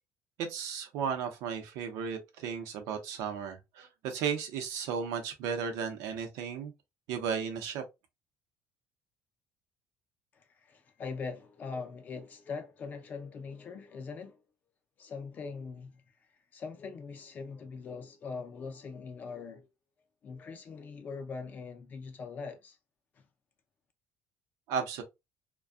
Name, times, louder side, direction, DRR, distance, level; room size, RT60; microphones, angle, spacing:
voice 1, 0.4-6.7 7.1-7.8 24.7-25.0, right 7 dB, 85° right, 0.7 m, -34 dB
voice 2, 10.3-14.4 15.0-16.0 16.5-19.7 20.2-22.8 23.2-23.3, left 4 dB, 30° left, 0.5 m, -42 dB
2.5 x 2.2 x 2.3 m
cardioid pair, 165°, 5 cm